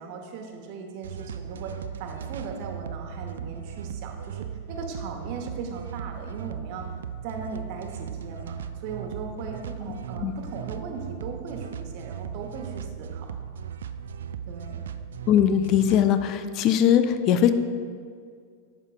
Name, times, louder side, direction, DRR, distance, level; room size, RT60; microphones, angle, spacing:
voice 1, 0.0-6.8 7.2-13.3 14.5-14.8, right 5 dB, 45° right, 3 dB, 1.1 m, -38 dB
sound 1, 1.0-16.1, right 8 dB, 65° right, 0.3 m, -37 dB
voice 2, 15.3-17.5, left 9 dB, 40° left, 9 dB, 0.5 m, -20 dB
11.5 x 8.0 x 2.4 m, 2.1 s
figure-of-eight pair, 90°, 0 cm